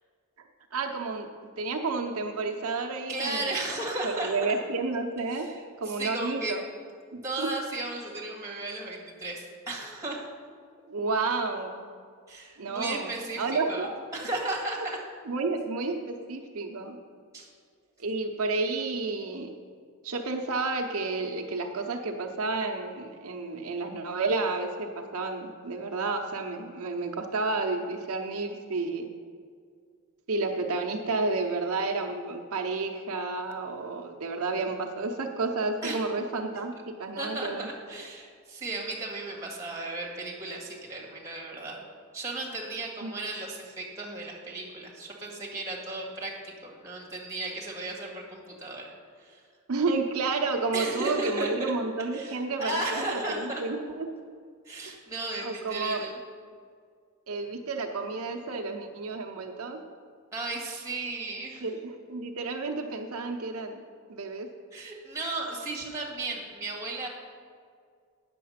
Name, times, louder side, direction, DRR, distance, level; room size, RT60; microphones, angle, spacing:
voice 1, 0.4-3.6 4.0-5.5 5.8-6.6 7.1-7.5 10.9-11.9 12.6-14.0 14.9-15.0 15.2-17.0 18.0-19.5 20.0-29.1 30.3-37.7 43.0-43.1 49.7-54.1 55.4-56.0 57.3-59.8 61.6-63.8 64.1-64.5, right 3 dB, 75° right, 3 dB, 0.7 m, -31 dB
voice 2, 3.1-4.3 6.0-6.5 7.2-10.2 12.3-13.4 13.7-13.9 14.1-15.0 17.3-17.5 35.8-36.0 37.2-41.8 42.1-48.9 49.2-49.4 50.7-51.7 52.2-53.6 54.7-56.2 60.3-61.6 64.7-67.1, right 2 dB, 15° right, -2 dB, 1.8 m, -35 dB
9.3 x 6.9 x 5.7 m, 2.1 s
head